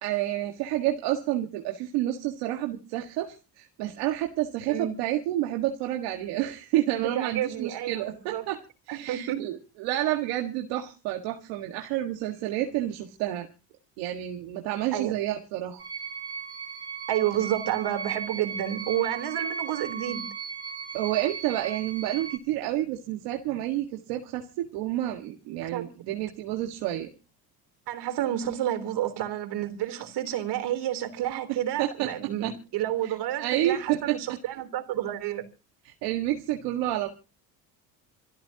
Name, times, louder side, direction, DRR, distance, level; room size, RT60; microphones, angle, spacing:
voice 1, 0.0-8.6 8.9-13.5 14.0-15.8 20.9-27.1 31.5-32.1 32.4-32.5 33.0-34.2 35.9-37.1, right 14 dB, 85° right, 1.8 m, -29 dB
voice 2, 7.0-8.5 8.9-9.5 14.9-15.1 17.1-20.3 25.6-25.9 27.9-35.4, right 11 dB, 70° right, 3.7 m, -30 dB
sound 1, 15.8-22.4, right 6 dB, 25° right, 3.4 m, -36 dB
27.5 x 13.5 x 2.9 m
supercardioid pair, 90°, 42 cm